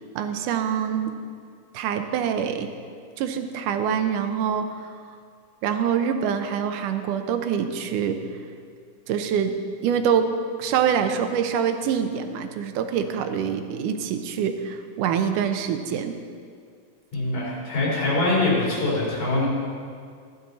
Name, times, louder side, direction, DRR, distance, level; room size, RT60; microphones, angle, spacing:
voice 1, 0.2-1.1 1.7-2.7 3.2-5.0 5.6-8.2 9.1-9.5 9.8-10.3 10.6-16.2, right 8 dB, 75° right, 7 dB, 2.2 m, -25 dB
voice 2, 17.1-19.5, left 2 dB, 70° left, -6 dB, 5.5 m, -23 dB
15.5 x 12.0 x 4.1 m, 2.1 s
omnidirectional pair, 3.9 m